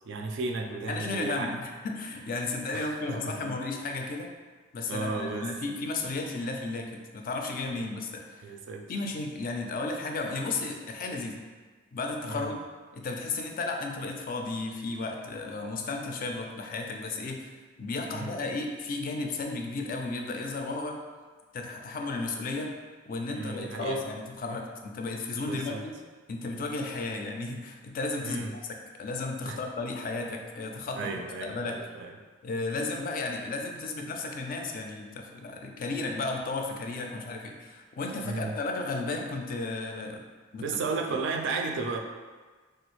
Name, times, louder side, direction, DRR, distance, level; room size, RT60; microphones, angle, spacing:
voice 1, 0.0-1.7 2.7-3.6 4.9-5.5 7.8-7.9 8.4-8.8 12.3-12.5 18.1-18.4 23.3-24.0 25.5-25.8 28.2-28.5 29.5-29.6 31.0-32.1 38.2-38.6 40.6-42.0, right 4 dB, 65° right, 3 dB, 0.4 m, -34 dB
voice 2, 0.9-4.3 4.7-8.5 8.9-11.4 11.9-12.6 12.9-17.5 17.8-21.0 21.5-22.7 23.1-25.9 26.3-31.1 31.4-31.8 32.4-40.2 40.5-40.6, left 3 dB, 45° left, 2 dB, 0.3 m, -34 dB
3.3 x 2.3 x 3.0 m, 1.4 s
head